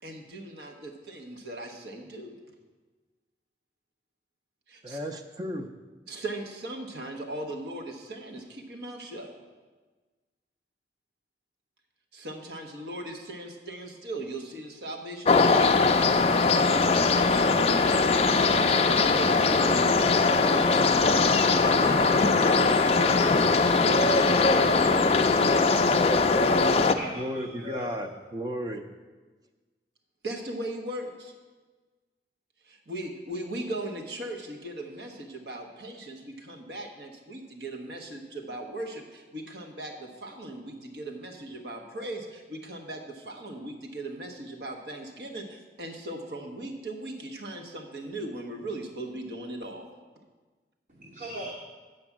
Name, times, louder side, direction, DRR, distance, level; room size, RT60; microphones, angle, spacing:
voice 1, 0.0-2.4 4.7-5.0 6.1-9.3 12.1-26.2 30.2-31.3 32.6-49.9, right 1 dB, 75° right, 3 dB, 1.2 m, -38 dB
voice 2, 4.8-5.7 26.8-28.8, equal, 20° right, 6 dB, 0.5 m, -34 dB
sound 1, 15.2-26.9, left 4 dB, 35° left, 0.4 m, -21 dB
voice 3, 26.7-28.0 50.9-51.5, equal, 45° right, -2 dB, 1.0 m, -39 dB
8.1 x 5.2 x 7.4 m, 1.3 s
head